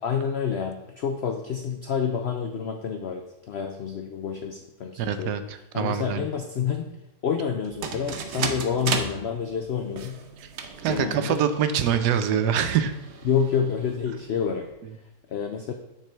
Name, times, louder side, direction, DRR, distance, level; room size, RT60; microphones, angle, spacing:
voice 1, 0.0-5.3 5.7-6.9 7.2-10.2 10.9-11.4 13.2-14.7 15.3-15.7, left 7 dB, 80° left, 5 dB, 0.5 m, -28 dB
voice 2, 5.0-6.3 10.4-10.5 10.8-12.9, right 8 dB, 85° right, 9 dB, 1.2 m, -25 dB
sound 1, 7.6-14.7, right 5 dB, 60° right, 0.8 m, -35 dB
9.1 x 3.7 x 4.5 m, 0.93 s
omnidirectional pair, 1.7 m